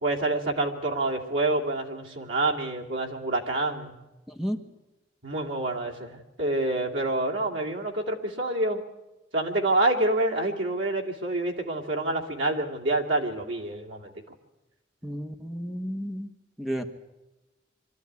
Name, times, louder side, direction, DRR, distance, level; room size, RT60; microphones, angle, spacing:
voice 1, 0.0-3.9 5.2-8.8 9.3-14.1, right 2 dB, 85° right, 0 dB, 2.6 m, -27 dB
voice 2, 4.3-4.6 15.0-16.3 16.6-16.9, equal, ahead, 5 dB, 1.2 m, -32 dB
24.0 x 13.0 x 9.5 m, 1.1 s
head